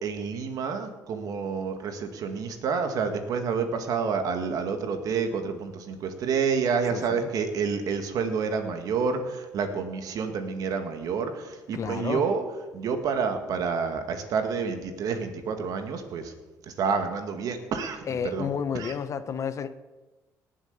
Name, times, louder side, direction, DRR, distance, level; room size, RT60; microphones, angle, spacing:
voice 1, 0.0-11.3 11.7-12.4 12.7-16.2 16.8-18.5 18.7-18.9, right 5 dB, 65° right, 7 dB, 2.0 m, -29 dB
voice 2, 6.9-7.3 11.7-12.2 18.1-19.8, left 7 dB, 50° left, 12 dB, 1.0 m, -31 dB
18.5 x 7.7 x 6.8 m, 1.2 s
cardioid pair, 90°, 7 cm